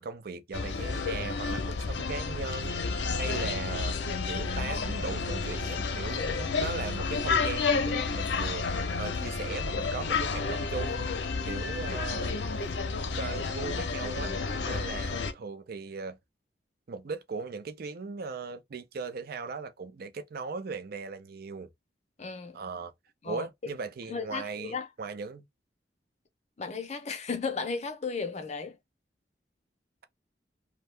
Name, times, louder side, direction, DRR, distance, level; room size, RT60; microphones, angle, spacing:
voice 1, 0.0-3.9 4.3-11.1 11.5-12.3 13.2-14.4 14.6-16.2 16.9-21.7 22.5-22.9 23.2-25.4, right 4 dB, 60° right, 0.5 m, -38 dB
sound 1, 0.5-15.3, left 4 dB, 80° left, 0.6 m, -31 dB
voice 2, 22.2-22.6 23.2-23.5 24.1-24.9 26.6-28.8, left 5 dB, 40° left, 0.6 m, -34 dB
2.7 x 2.2 x 3.2 m
head